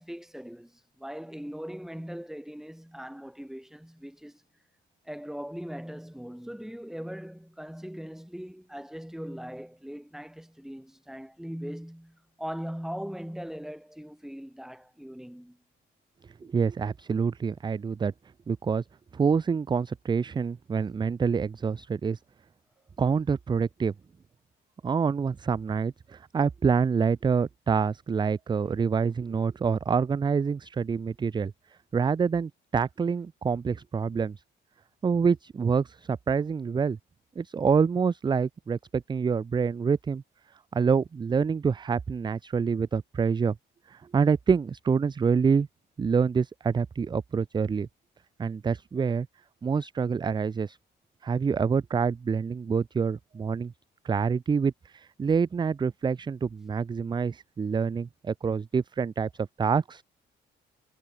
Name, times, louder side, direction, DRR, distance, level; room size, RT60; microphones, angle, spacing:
voice 1, 0.0-4.4 5.0-15.6 16.4-16.5, equal, ahead, 6.2 m, -40 dB
voice 2, 16.5-18.1 18.5-18.8 19.1-22.2 23.0-23.9 24.8-31.5 31.9-34.4 35.0-37.0 37.4-40.2 40.7-43.5 43.9-45.7 46.0-47.9 48.4-49.3 49.6-50.8 51.2-53.7 54.0-59.3 59.6-60.0, right 5 dB, 25° right, 0.4 m, -26 dB
cardioid pair, 90°, 20 cm